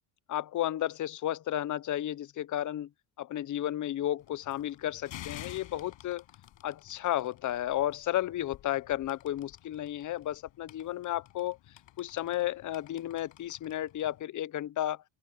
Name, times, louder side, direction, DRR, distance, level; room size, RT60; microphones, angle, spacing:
voice 1, 0.3-2.9 3.2-6.2 6.6-11.6 12.0-15.0, left 13 dB, 40° left, 0.6 m, -33 dB
sound 1, 4.2-14.2, left 13 dB, 70° left, 7.5 m, -51 dB
open air
cardioid pair, 120°, 47 cm